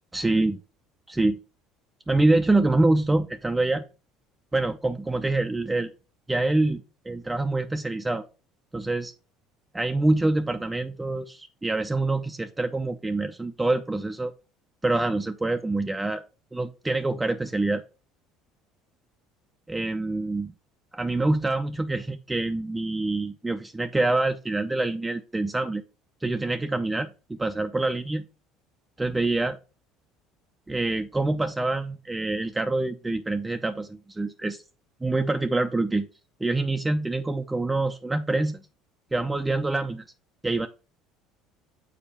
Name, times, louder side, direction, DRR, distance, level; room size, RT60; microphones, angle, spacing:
voice 1, 0.1-0.6 1.1-1.4 2.1-3.8 4.5-5.9 6.3-8.2 8.7-9.1 9.7-14.3 14.8-16.2 16.5-17.8 19.7-20.5 20.9-25.8 26.2-28.2 29.0-29.6 30.7-34.6 35.0-36.1 36.4-38.6 39.1-40.0 40.4-40.7, right 2 dB, 15° right, 0.6 m, -26 dB
7.1 x 4.2 x 4.3 m
hypercardioid pair, 75°, 0 cm